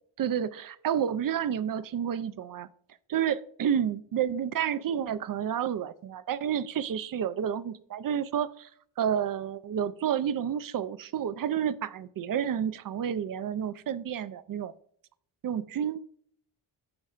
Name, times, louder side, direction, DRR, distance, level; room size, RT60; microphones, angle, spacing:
voice 1, 0.2-2.7 3.1-8.7 9.0-14.7 15.4-16.0, right 9 dB, 45° right, 0.5 m, -30 dB
14.5 x 5.4 x 2.4 m
wide cardioid pair, 145°, 47 cm